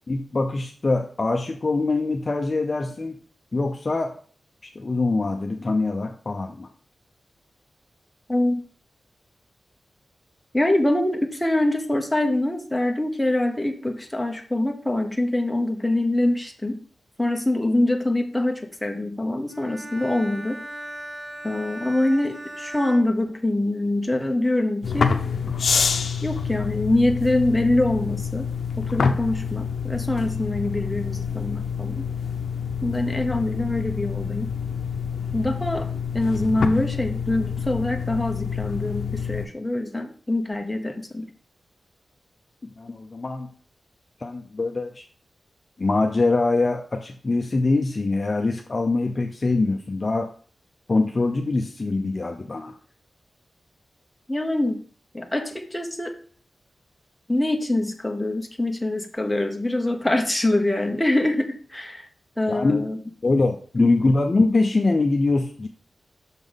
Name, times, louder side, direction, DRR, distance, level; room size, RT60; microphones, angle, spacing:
voice 1, 0.1-3.2 3.5-4.2 4.8-6.7 42.6-43.5 44.2-45.0 45.8-50.3 50.9-52.7 62.5-62.8 63.2-65.7, left 3 dB, 35° left, 4 dB, 0.5 m, -23 dB
voice 2, 8.3-8.6 10.5-16.8 17.2-20.6 21.4-25.2 26.2-28.5 28.8-32.1 32.8-34.5 35.3-35.9 36.1-41.3 54.3-54.8 55.1-56.2 57.3-62.1 62.4-63.0 63.8-63.9, left 1 dB, 10° left, 3 dB, 0.9 m, -24 dB
Bowed string instrument, 19.5-24.0, right 1 dB, 20° right, 1.5 m, -38 dB
sound 1, 24.8-39.5, left 6 dB, 75° left, 0.6 m, -27 dB
6.3 x 5.3 x 3.9 m, 0.43 s
wide cardioid pair, 140°, 0 cm